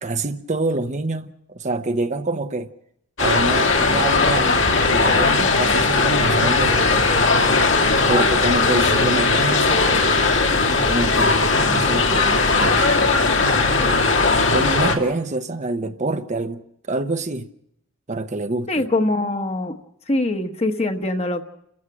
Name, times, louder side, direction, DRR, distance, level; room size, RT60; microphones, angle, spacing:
voice 1, 0.0-2.7 3.2-7.1 8.1-10.2 10.8-13.1 14.5-16.6 16.9-17.5 18.1-18.8, right 2 dB, 35° right, 0.8 m, -26 dB
sound 1, 3.2-15.0, left 3 dB, 65° left, 2.5 m, -18 dB
voice 2, 18.7-19.8 20.1-21.4, left 2 dB, 30° left, 1.3 m, -23 dB
29.5 x 15.0 x 6.1 m
head